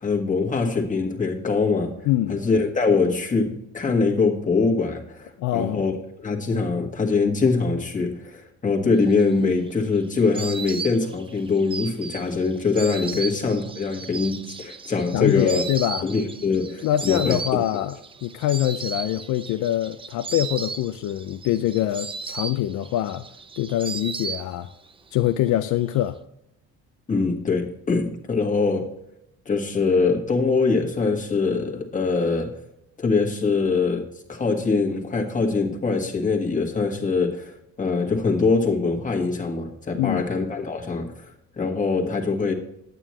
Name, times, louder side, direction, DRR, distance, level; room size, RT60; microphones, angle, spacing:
voice 1, 0.0-1.9 2.3-5.9 6.2-15.6 16.0-17.4 27.1-28.9 29.4-32.6 33.0-41.3 41.6-42.5, left 4 dB, 25° left, 1.6 m, -23 dB
voice 2, 2.1-2.4 5.4-5.8 13.1-13.2 15.1-16.1 16.8-23.2 23.6-24.7 25.1-26.2 39.9-40.2, left 13 dB, 70° left, 0.5 m, -24 dB
Insect, 9.2-24.9 25.2-26.0, right 5 dB, 20° right, 0.4 m, -36 dB
9.1 x 9.0 x 3.1 m
cardioid pair, 115°, 31 cm